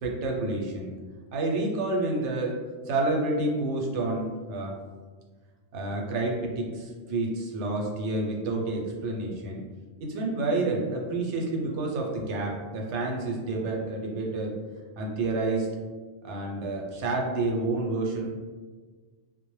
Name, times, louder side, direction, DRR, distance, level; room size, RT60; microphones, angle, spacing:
voice 1, 0.0-1.0 1.3-2.6 2.9-4.7 5.7-9.6 10.0-14.5 15.0-15.7 16.2-18.2, right 2 dB, 75° right, -1 dB, 0.9 m, -29 dB
2.1 x 2.1 x 3.0 m, 1.5 s
omnidirectional pair, 1.2 m